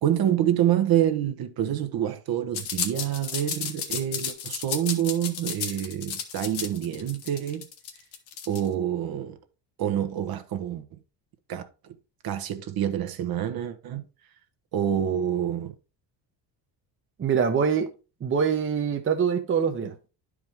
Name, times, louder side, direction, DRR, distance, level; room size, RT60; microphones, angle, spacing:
voice 1, 0.0-7.7 8.5-9.4 9.8-10.8 11.5-11.7 12.2-14.0 14.7-15.7, right 10 dB, 55° right, 1.1 m, -27 dB
sound 1, 2.5-8.7, left 8 dB, 65° left, 1.6 m, -33 dB
voice 2, 17.2-17.9 18.2-19.9, right 6 dB, 30° right, 0.9 m, -24 dB
10.5 x 4.8 x 3.5 m
cardioid pair, 125°, 43 cm